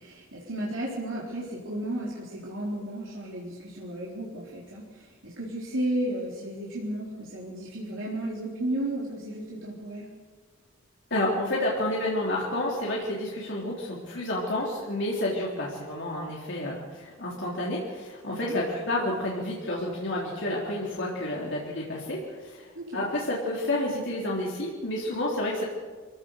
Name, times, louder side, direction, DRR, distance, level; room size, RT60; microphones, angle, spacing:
voice 1, 0.0-10.1 18.3-18.6 22.7-23.0, right 1 dB, 70° right, -6 dB, 4.1 m, -33 dB
voice 2, 11.1-25.6, left 1 dB, 65° left, -4 dB, 3.8 m, -30 dB
24.5 x 16.5 x 6.6 m, 1.4 s
head